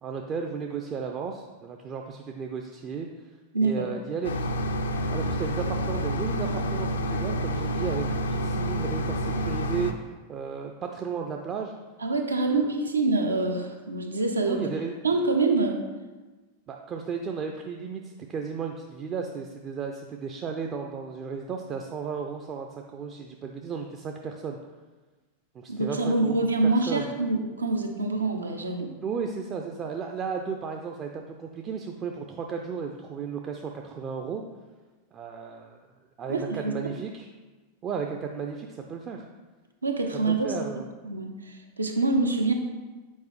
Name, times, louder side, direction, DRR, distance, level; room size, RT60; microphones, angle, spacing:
voice 1, 0.0-3.3 3.6-4.5 5.1-8.0 8.3-11.7 12.5-12.6 14.5-14.9 16.7-24.6 25.5-26.4 26.9-27.1 29.0-34.4 35.1-35.8 36.2-37.3 37.8-39.2 40.2-40.9, right 6 dB, 30° right, 2 dB, 0.4 m, -34 dB
voice 2, 3.5-3.9 12.0-14.7 15.0-15.8 25.7-28.9 36.3-36.9 39.8-40.5 41.0-42.5, right 3 dB, 80° right, 4 dB, 0.7 m, -26 dB
sound 1, 4.2-9.9, equal, 70° left, 0.4 m, -28 dB
7.2 x 4.7 x 3.1 m, 1.3 s
figure-of-eight pair, 90°, 0 cm